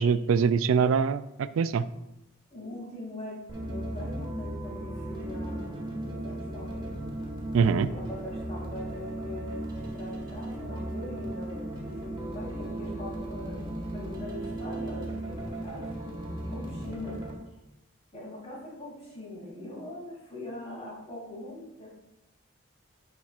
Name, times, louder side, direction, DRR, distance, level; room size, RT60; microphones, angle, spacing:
voice 1, 0.0-1.9 7.5-7.9, right 6 dB, 90° right, 14 dB, 0.3 m, -23 dB
voice 2, 2.5-6.9 7.9-15.9 16.5-17.2 18.1-21.9, left 1 dB, 35° left, -4 dB, 2.7 m, -42 dB
sound 1, 3.5-17.3, right 1 dB, 25° right, 1.6 m, -36 dB
10.0 x 5.6 x 2.5 m, 0.92 s
head